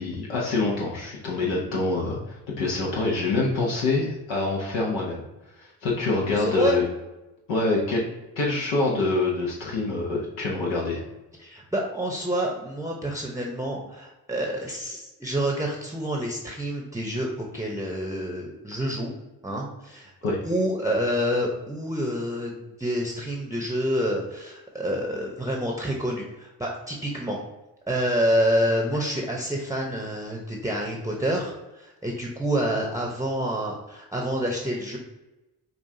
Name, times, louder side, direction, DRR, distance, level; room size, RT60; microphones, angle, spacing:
voice 1, 0.0-5.2 5.6-6.8 7.5-8.0 8.4-11.0 20.2-20.4, left 3 dB, 75° left, -3 dB, 1.0 m, -25 dB
voice 2, 6.4-6.8 11.4-19.1 19.4-20.1 20.4-27.4 27.9-35.0, equal, 5° right, -1 dB, 0.8 m, -28 dB
5.5 x 2.4 x 2.7 m, 1.0 s
hypercardioid pair, 45°, 45 cm